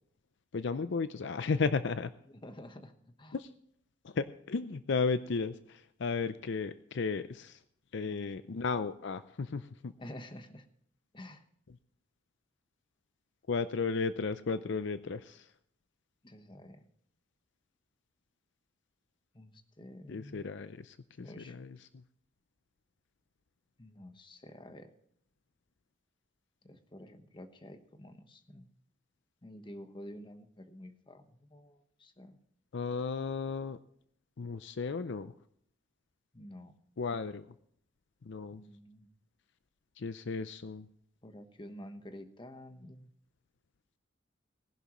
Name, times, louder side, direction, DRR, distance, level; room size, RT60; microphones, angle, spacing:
voice 1, 0.5-2.1 3.3-3.5 4.0-7.6 7.9-9.9 13.5-15.5 20.1-21.8 32.7-33.8 34.4-35.3 37.0-37.5 38.3-38.6 40.0-40.9, left 4 dB, 60° left, 13 dB, 0.5 m, -34 dB
voice 2, 2.3-3.4 8.0-8.3 10.0-10.6 11.1-11.4 16.2-16.8 19.3-20.5 21.2-21.6 23.8-24.9 26.6-28.7 29.4-32.4 36.3-36.7 38.5-39.1 41.2-43.1, left 1 dB, 25° left, 8 dB, 1.1 m, -49 dB
19.0 x 11.0 x 3.1 m, 0.67 s
head